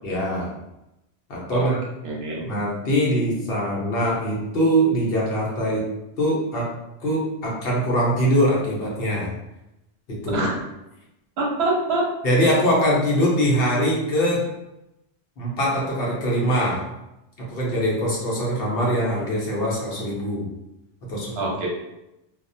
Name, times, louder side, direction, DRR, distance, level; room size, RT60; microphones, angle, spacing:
voice 1, 0.0-0.5 1.3-1.8 2.3-5.9 6.2-6.7 7.0-9.3 10.1-10.5 12.2-14.4 15.4-16.8 17.5-20.5 21.1-21.5, equal, 65° left, -4 dB, 1.0 m, -22 dB
voice 2, 2.0-2.4 10.3-10.5 11.4-12.1 21.4-21.7, right 2 dB, 80° right, -2 dB, 0.9 m, -24 dB
2.5 x 2.1 x 2.6 m, 0.91 s
omnidirectional pair, 1.1 m